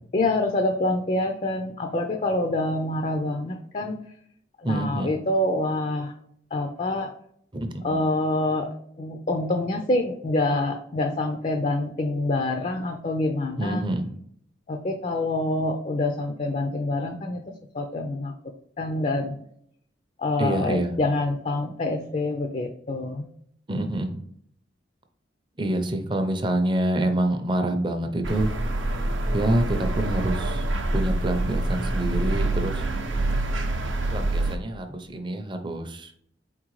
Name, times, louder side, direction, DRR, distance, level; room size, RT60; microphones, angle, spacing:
voice 1, 0.1-4.0 4.6-6.1 6.5-7.1 7.8-8.7 9.0-13.8 14.7-17.4 17.7-18.3 18.8-19.4 20.2-23.3, left 2 dB, 35° left, 4 dB, 0.4 m, -26 dB
voice 2, 4.6-5.1 7.5-7.8 13.6-14.1 20.4-20.9 23.7-24.2 25.6-28.5 29.3-30.6 30.9-32.9 34.1-36.1, right 1 dB, 25° right, 5 dB, 0.5 m, -26 dB
sound 1, 28.2-34.6, right 2 dB, 85° right, 0.6 m, -26 dB
4.3 x 3.7 x 3.0 m, 0.67 s
head